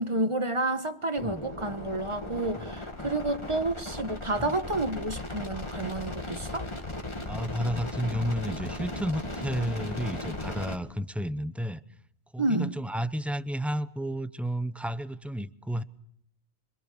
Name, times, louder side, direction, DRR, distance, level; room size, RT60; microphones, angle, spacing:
voice 1, 0.0-6.7 12.4-12.7, right 2 dB, 25° right, 1.3 m, -30 dB
sound 1, 1.2-10.8, left 2 dB, 20° left, 2.2 m, -37 dB
voice 2, 7.3-11.8 12.3-15.8, equal, ahead, 0.7 m, -32 dB
26.0 x 25.5 x 7.1 m
omnidirectional pair, 1.4 m